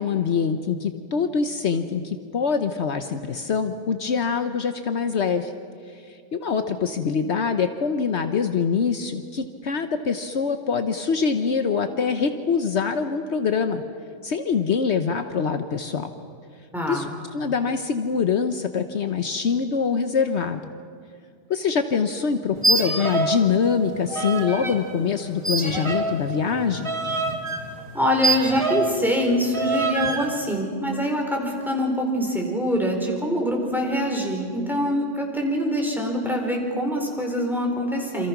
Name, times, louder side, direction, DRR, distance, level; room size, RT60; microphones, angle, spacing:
voice 1, 0.0-5.5 5.9-13.8 14.2-16.1 16.9-20.6 21.5-26.9, left 6 dB, 65° left, 8 dB, 1.2 m, -24 dB
voice 2, 16.7-17.1 27.9-38.3, equal, ahead, 0 dB, 4.4 m, -24 dB
sound 1, 22.5-23.4 23.7-24.8 25.4-29.0 29.5-30.3, right 3 dB, 25° right, 2.3 m, -25 dB
28.5 x 26.5 x 6.0 m, 2.3 s
omnidirectional pair, 1.3 m